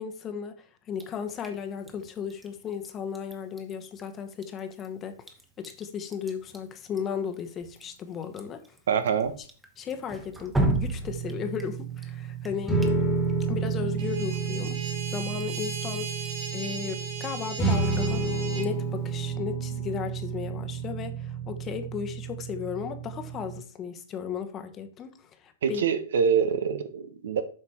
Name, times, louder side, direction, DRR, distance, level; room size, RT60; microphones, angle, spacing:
voice 1, 0.0-5.2 5.6-8.6 9.8-12.8 13.5-14.8 15.1-18.3 18.5-25.8, left 7 dB, 25° left, 1.1 m, -35 dB
Drip, 0.9-19.2, right 2 dB, 10° right, 1.3 m, -38 dB
voice 2, 8.9-9.3 25.6-27.4, right 7 dB, 70° right, 1.1 m, -25 dB
sound 1, 11.0-23.6, right 5 dB, 10° left, 1.7 m, -31 dB
sound 2, 14.0-18.7, right 4 dB, 45° right, 2.1 m, -37 dB
8.1 x 5.1 x 4.3 m
hypercardioid pair, 125°, 0 cm